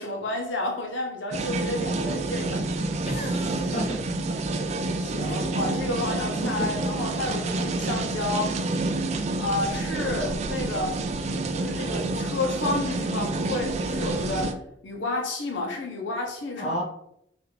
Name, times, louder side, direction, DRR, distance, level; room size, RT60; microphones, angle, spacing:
voice 1, 0.0-3.0 4.6-4.7 5.0-8.6 9.4-11.0 11.5-14.5 14.8-16.8, left 2 dB, 90° left, 1 dB, 0.7 m, -31 dB
sound 1, 1.3-14.5, right 2 dB, 40° right, 0.3 m, -28 dB
voice 2, 3.0-4.0 5.2-5.4 6.6-6.7 16.6-16.8, equal, 40° left, -2 dB, 1.0 m, -32 dB
4.7 x 2.5 x 3.2 m, 0.76 s
head